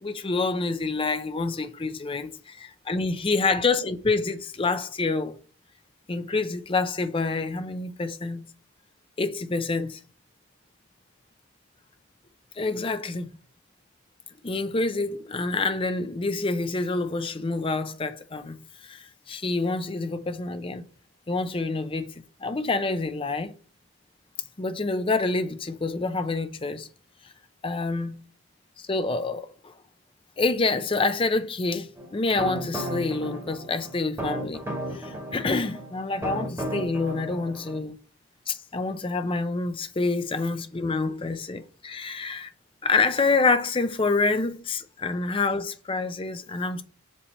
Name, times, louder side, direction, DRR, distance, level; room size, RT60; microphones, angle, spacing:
voice 1, 0.0-5.4 6.1-8.5 9.2-10.0 12.6-13.3 14.4-20.9 21.3-22.1 22.4-23.5 24.6-26.9 27.6-28.2 28.8-29.7 30.4-38.0 38.5-42.5 42.8-46.8, left 3 dB, 25° left, 0.5 m, -27 dB
sound 1, 32.0-37.8, equal, 15° right, 1.9 m, -34 dB
7.2 x 3.3 x 4.2 m
head